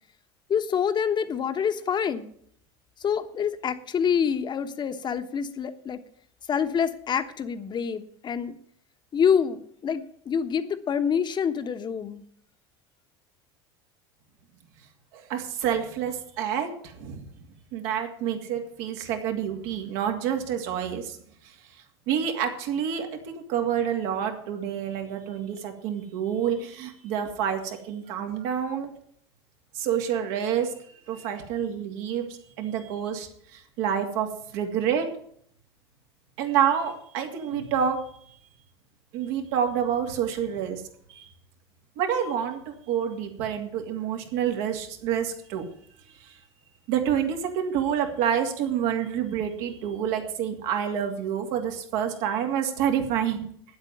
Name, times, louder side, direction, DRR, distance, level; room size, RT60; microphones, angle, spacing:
voice 1, 0.5-2.3 3.0-6.0 6.5-8.6 9.1-12.2, left 7 dB, 35° left, 10 dB, 1.2 m, -26 dB
voice 2, 15.1-17.2 17.7-21.2 21.4-21.6 22.1-28.9 29.7-30.8 31.1-35.1 36.4-38.0 39.1-40.8 41.1-41.3 42.0-45.6 46.2-46.4 46.9-53.5, right 8 dB, 70° right, 4 dB, 2.5 m, -28 dB
9.5 x 8.0 x 9.1 m, 0.64 s
hypercardioid pair, 90°, 13 cm